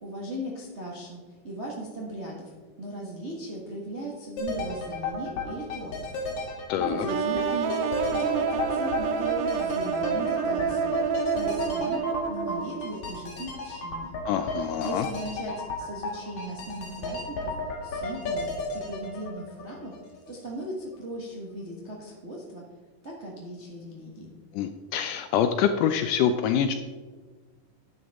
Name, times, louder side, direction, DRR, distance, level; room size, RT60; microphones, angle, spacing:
voice 1, 0.0-6.1 6.8-11.0 11.3-12.0 12.3-14.1 14.7-17.5 17.8-18.5 18.9-20.0 20.3-22.6 23.0-24.3, right 1 dB, 45° right, -3 dB, 0.8 m, -38 dB
sound 1, 4.4-20.3 20.6-20.7, left 2 dB, 60° left, 2.9 m, -34 dB
voice 2, 6.7-7.1 14.3-15.1 24.5-26.7, left 8 dB, 80° left, 8 dB, 1.9 m, -25 dB
sound 2, 7.1-12.9, right 6 dB, 75° right, 2.2 m, -28 dB
11.5 x 9.5 x 3.6 m, 1.4 s
omnidirectional pair, 4.1 m